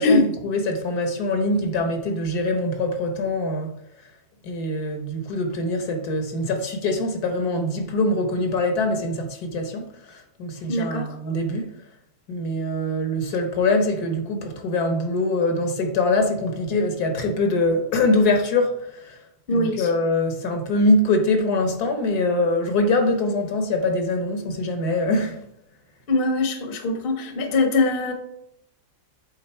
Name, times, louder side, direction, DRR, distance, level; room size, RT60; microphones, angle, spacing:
voice 1, 0.0-3.7 4.4-11.7 12.3-19.2 19.5-25.4, left 2 dB, 70° left, 1.4 m, -23 dB
voice 2, 10.7-11.1 19.5-19.9 26.1-28.1, left 2 dB, 40° left, 0.9 m, -22 dB
7.8 x 3.8 x 4.4 m
omnidirectional pair, 1.8 m